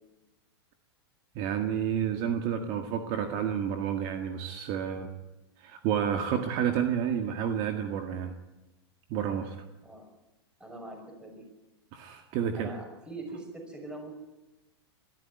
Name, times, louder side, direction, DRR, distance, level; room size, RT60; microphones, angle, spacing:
voice 1, 1.4-5.1 5.6-8.3 9.1-9.6 11.9-12.7, right 8 dB, 40° right, 5 dB, 1.9 m, -30 dB
voice 2, 10.6-11.5 12.5-14.1, right 2 dB, 5° right, 3 dB, 5.6 m, -43 dB
22.5 x 13.5 x 9.7 m, 1.0 s
hypercardioid pair, 135°, 13 cm